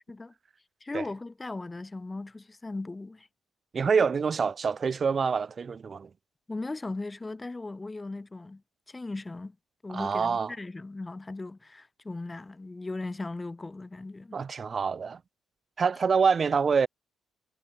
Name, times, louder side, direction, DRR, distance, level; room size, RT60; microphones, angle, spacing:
voice 1, 0.8-3.3 6.5-8.6 8.9-9.6 9.8-14.4, left 2 dB, 15° left, 1.8 m, -38 dB
voice 2, 3.7-6.1 9.9-10.5 14.3-15.2 15.8-16.9, right 5 dB, 30° right, 0.7 m, -26 dB
cardioid pair, 175°, 0 cm